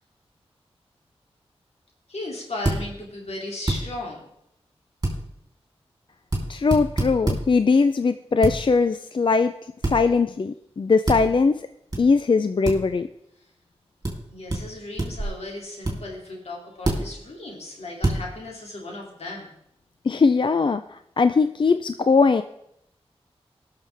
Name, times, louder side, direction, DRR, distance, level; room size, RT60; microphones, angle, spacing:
voice 1, 2.1-4.2 14.3-19.5, left 2 dB, 80° left, -1 dB, 2.6 m, -36 dB
finger tap table counter wood various, 2.6-2.8 3.7-3.8 5.0-5.2 6.3-6.4 6.7-7.4 8.4-8.6 9.8-10.0 11.1-11.2 11.9-12.0 12.6-12.8 14.0-14.1 14.5-14.6 15.0-15.3 15.8-16.0 16.8-17.0 18.0-18.2, right 2 dB, 35° right, 3.2 m, -24 dB
voice 2, 6.5-9.5 9.9-11.7 12.0-13.1 20.0-22.4, left 4 dB, 50° left, 10 dB, 0.4 m, -20 dB
19.5 x 6.6 x 3.4 m, 0.79 s
wide cardioid pair, 60°, 11 cm